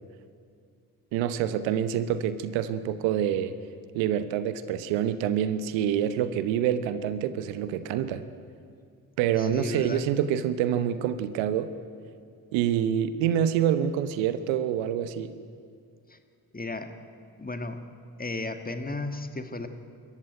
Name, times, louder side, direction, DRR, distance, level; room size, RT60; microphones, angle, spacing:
voice 1, 1.1-3.5 3.9-8.2 9.2-11.7 12.5-15.3, right 9 dB, 75° right, 13 dB, 1.1 m, -26 dB
voice 2, 9.4-10.1 16.1-16.2 16.5-16.9 17.4-17.8 18.2-19.7, left 2 dB, 20° left, 7 dB, 2.1 m, -34 dB
25.5 x 14.5 x 9.1 m, 2.2 s
hypercardioid pair, 45°, 47 cm